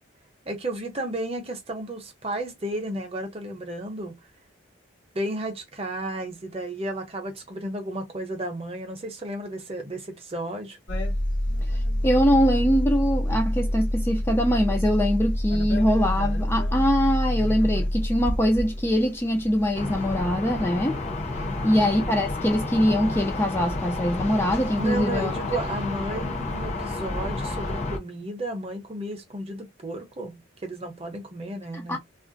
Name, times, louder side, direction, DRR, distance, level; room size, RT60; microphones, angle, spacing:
voice 1, 0.4-4.1 5.1-10.8 21.4-21.9 24.8-32.0, right 1 dB, 30° right, 0.7 m, -33 dB
sound 1, 10.9-20.2, left 1 dB, 70° left, 1.0 m, -27 dB
voice 2, 11.7-21.0 21.6-25.3 31.7-32.0, equal, 10° left, 0.4 m, -23 dB
sound 2, 19.7-28.0, left 2 dB, 35° left, 0.7 m, -30 dB
2.4 x 2.1 x 3.8 m
head